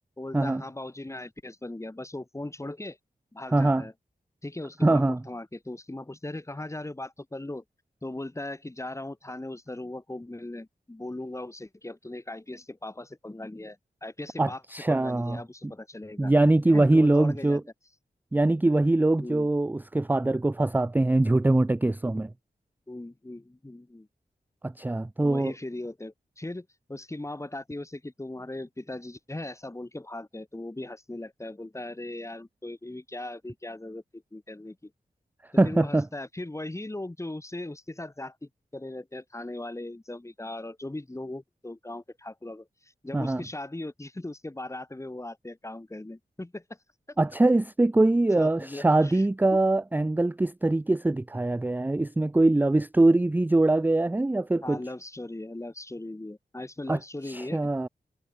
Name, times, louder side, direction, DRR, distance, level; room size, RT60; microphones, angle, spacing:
voice 1, 0.2-3.0 3.3-3.9 4.4-7.6 8.0-14.6 14.9-16.3 16.7-17.6 19.2-19.5 22.9-24.1 25.2-34.9 35.6-46.6 48.4-49.2 49.5-49.6 54.6-57.9, left 2 dB, 15° left, 1.4 m, -38 dB
voice 2, 3.5-3.9 4.8-5.2 14.4-15.7 16.2-17.6 18.3-22.3 24.6-25.5 35.6-36.1 43.1-43.4 47.2-54.8 56.9-57.0 57.3-57.9, right 2 dB, 10° right, 0.4 m, -23 dB
cardioid pair, 60°, 17 cm